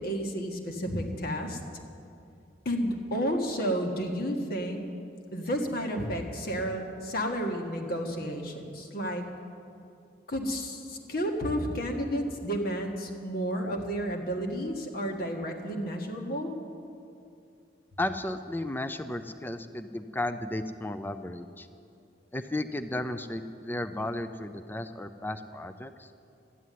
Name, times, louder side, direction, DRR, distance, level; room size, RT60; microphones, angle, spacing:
voice 1, 0.0-1.6 2.6-4.8 5.3-9.2 10.3-16.5, equal, 55° left, 2 dB, 1.7 m, -31 dB
voice 2, 18.0-21.7 22.3-26.1, left 1 dB, 10° left, 10 dB, 0.5 m, -34 dB
12.5 x 9.8 x 9.2 m, 2.6 s
head